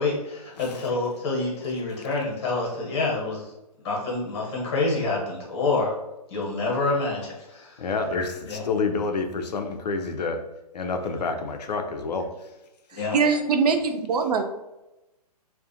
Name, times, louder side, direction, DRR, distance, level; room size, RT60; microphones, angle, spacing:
voice 1, 0.0-3.5 3.8-5.9 6.3-7.8 8.1-8.7 12.9-13.2, left 3 dB, 40° left, -2 dB, 1.0 m, -27 dB
voice 2, 0.6-0.9 7.8-10.4 10.7-12.5, left 4 dB, 85° left, 5 dB, 0.4 m, -28 dB
voice 3, 13.1-14.4, right 5 dB, 70° right, 6 dB, 0.5 m, -22 dB
2.4 x 2.1 x 2.7 m, 0.95 s
hypercardioid pair, 145°, 20 cm